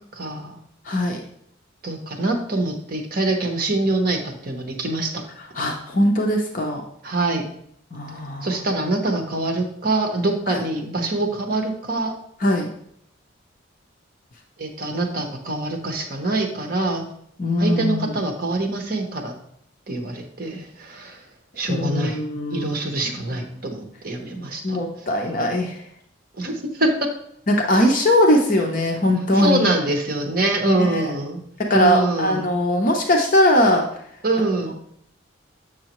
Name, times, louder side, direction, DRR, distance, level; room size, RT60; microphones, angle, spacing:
voice 1, 0.1-0.6 1.8-5.2 7.0-7.4 8.4-12.1 14.6-17.0 17.6-19.3 19.9-21.2 21.6-22.2 22.5-25.1 26.4-27.1 29.3-31.4 31.7-32.5 34.2-34.7, right 2 dB, 45° right, 3 dB, 1.0 m, -24 dB
voice 2, 0.9-1.2 5.6-6.8 7.9-8.5 10.5-10.6 12.4-12.7 17.4-18.1 21.7-22.7 24.6-25.8 27.5-29.7 30.7-31.1 31.7-33.9, left 1 dB, 40° left, 1 dB, 0.7 m, -20 dB
7.5 x 6.4 x 3.0 m, 0.71 s
head